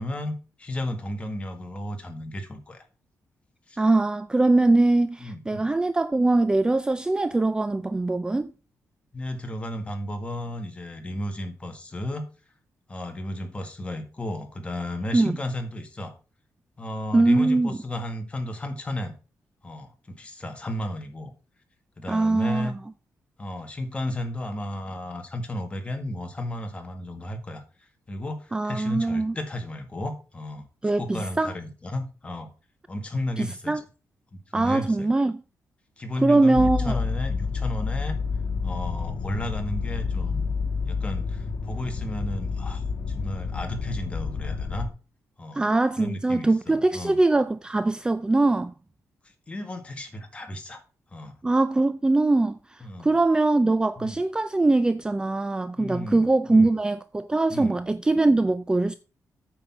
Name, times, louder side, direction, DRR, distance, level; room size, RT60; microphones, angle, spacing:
voice 1, 0.0-2.8 3.7-3.8 5.2-5.7 9.1-12.3 12.9-16.1 16.8-19.1 19.6-21.3 22.0-22.7 23.4-27.6 28.1-30.7 31.0-32.5 32.9-33.8 34.3-35.1 36.0-38.2 38.6-40.5 40.9-44.9 45.4-45.7 46.0-47.2 49.5-50.8 51.1-51.4 52.8-53.2 54.0-54.2 55.8-56.7 57.5-57.8, left 1 dB, 20° left, 1.8 m, -33 dB
voice 2, 3.8-8.5 15.1-15.4 17.1-17.8 22.1-22.7 28.5-29.4 30.8-31.5 33.4-33.8 34.5-35.4 36.2-37.0 45.6-48.7 51.4-58.9, right 2 dB, 15° right, 0.4 m, -22 dB
sound 1, 36.5-44.9, left 5 dB, 60° left, 1.9 m, -29 dB
8.9 x 5.7 x 5.9 m
wide cardioid pair, 140°, 6 cm